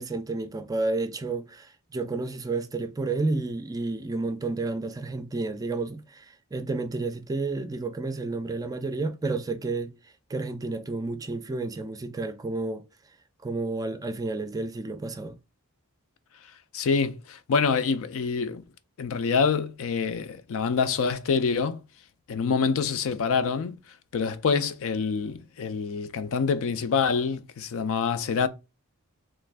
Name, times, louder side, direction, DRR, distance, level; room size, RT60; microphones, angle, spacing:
voice 1, 0.0-9.9 10.3-12.8 13.4-15.4, right 3 dB, 15° right, 0.4 m, -31 dB
voice 2, 16.7-18.6 19.0-21.8 22.3-23.8 24.1-28.5, left 5 dB, 70° left, 0.4 m, -26 dB
3.1 x 2.5 x 3.2 m
head